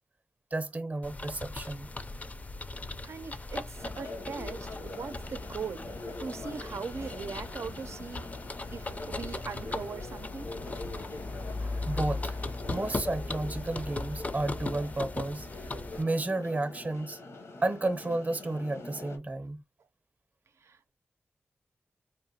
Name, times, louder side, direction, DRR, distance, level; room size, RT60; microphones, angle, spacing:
voice 1, 0.5-1.9 11.3-12.4 12.7-15.5 16.0-17.2 17.6-19.6, right 2 dB, 35° right, 0.6 m, -32 dB
sound 1, 1.0-16.0, left 2 dB, 35° left, 0.4 m, -38 dB
voice 2, 3.0-8.3 8.7-10.5 20.6-20.9, right 5 dB, 85° right, 0.5 m, -40 dB
sound 2, 3.7-19.2, left 2 dB, 85° left, 0.9 m, -44 dB
4.4 x 2.9 x 2.7 m
wide cardioid pair, 90°, 5 cm